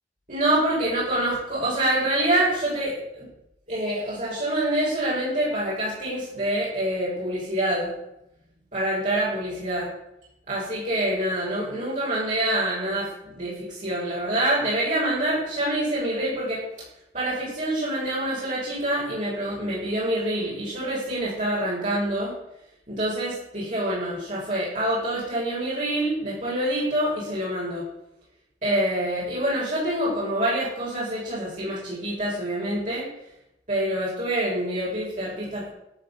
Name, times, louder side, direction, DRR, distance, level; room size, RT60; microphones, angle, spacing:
voice 1, 0.3-3.3 3.7-7.9 8.7-9.9 10.5-13.1 13.4-16.6 17.1-22.3 22.9-27.8 28.6-33.0 33.7-35.7, right 1 dB, 45° right, -9 dB, 6.9 m, -26 dB
14.5 x 8.0 x 8.6 m, 0.83 s
head